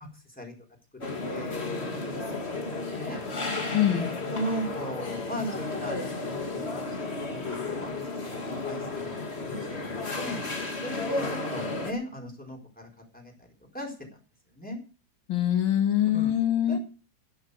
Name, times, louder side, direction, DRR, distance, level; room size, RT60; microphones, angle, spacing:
sound 1, 1.0-11.9, left 3 dB, 30° left, 2.3 m, -33 dB
voice 1, 1.3-1.7 2.1-3.2 3.9-6.1 6.5-6.6 7.0-7.9 8.2-10.4 10.8-12.9 13.1-13.3 13.7-13.9 14.5-14.8 16.1-16.3 16.7-16.8, equal, 5° left, 1 dB, 4.4 m, -37 dB
voice 2, 3.7-4.1 15.3-16.8, left 11 dB, 70° left, 4 dB, 2.9 m, -24 dB
11.5 x 11.0 x 6.8 m, 0.36 s
omnidirectional pair, 2.2 m